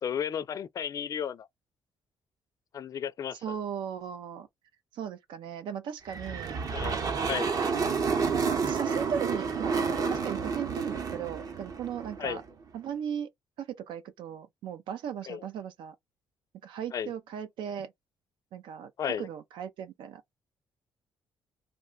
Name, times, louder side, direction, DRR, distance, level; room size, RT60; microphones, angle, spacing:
voice 1, 0.0-1.5 2.7-3.6 6.7-7.5 12.2-12.4 15.3-15.4 16.9-17.1 19.0-19.3, left 8 dB, 45° left, 0.3 m, -34 dB
voice 2, 3.4-4.5 4.9-6.6 6.9-7.5 8.6-9.7 10.1-12.4 12.7-13.3 13.6-16.0 16.6-17.9 18.5-18.9 19.2-20.4, right 8 dB, 85° right, 0.4 m, -37 dB
sound 1, 6.1-12.5, right 5 dB, 45° right, 0.7 m, -30 dB
2.4 x 2.1 x 3.6 m
cardioid pair, 120°, 8 cm